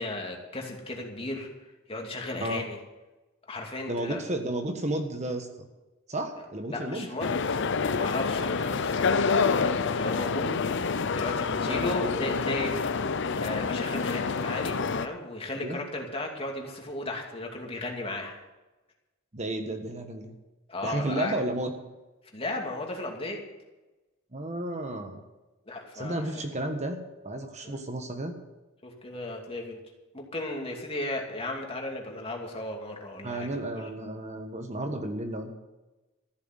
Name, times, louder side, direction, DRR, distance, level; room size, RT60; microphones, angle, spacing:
voice 1, 0.0-1.5 1.9-2.8 3.5-4.2 6.7-7.7 8.0-10.5 11.1-12.7 13.4-18.4 20.7-21.4 22.3-23.4 25.7-26.4 27.6-27.7 28.8-29.8 30.1-33.5 33.8-33.9, left 2 dB, 30° left, 1 dB, 2.5 m, -35 dB
voice 2, 3.9-5.7 6.1-7.1 11.7-12.3 15.6-15.8 19.3-20.3 20.8-21.7 24.3-25.2 25.9-27.0 27.2-28.3 33.2-35.5, right 1 dB, 35° right, 5 dB, 1.3 m, -32 dB
sound 1, 7.2-15.1, left 5 dB, 60° left, 0.7 m, -27 dB
14.0 x 8.1 x 8.1 m, 1.1 s
head